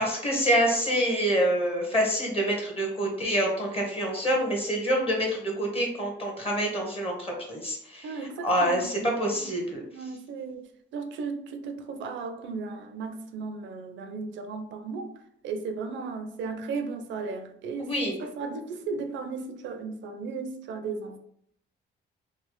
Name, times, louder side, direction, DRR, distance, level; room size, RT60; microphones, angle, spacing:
voice 1, 0.0-8.1 8.4-9.8 17.8-18.2, equal, 30° left, 0 dB, 0.9 m, -26 dB
voice 2, 8.0-9.5 9.9-10.6 10.9-15.1 15.4-17.9 18.2-21.2, right 4 dB, 70° right, 7 dB, 0.5 m, -35 dB
3.2 x 2.0 x 2.9 m, 0.71 s
cardioid pair, 90°, 20 cm